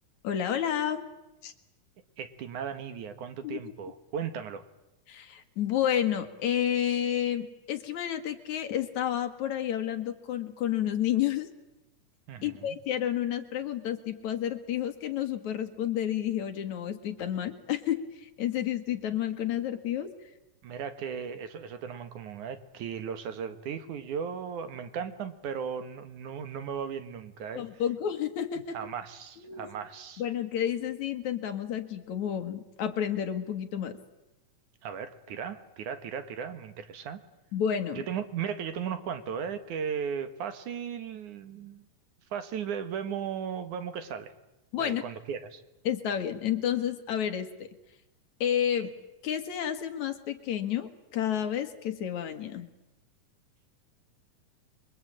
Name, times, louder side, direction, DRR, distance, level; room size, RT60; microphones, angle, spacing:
voice 1, 0.2-1.0 1.4-1.5 3.4-3.6 5.1-11.5 12.4-20.1 27.6-28.8 29.4-29.7 30.2-34.0 37.5-38.0 44.7-45.0 45.9-47.7 48.4-48.9 49.2-52.7, left 10 dB, 65° left, 8 dB, 2.9 m, -30 dB
voice 2, 2.2-4.6 12.3-12.8 20.6-27.8 28.7-30.2 34.8-37.2 37.9-41.8 42.3-44.3 44.8-45.6, right 7 dB, 70° right, 10 dB, 3.0 m, -36 dB
28.0 x 23.0 x 8.8 m, 0.94 s
omnidirectional pair, 3.7 m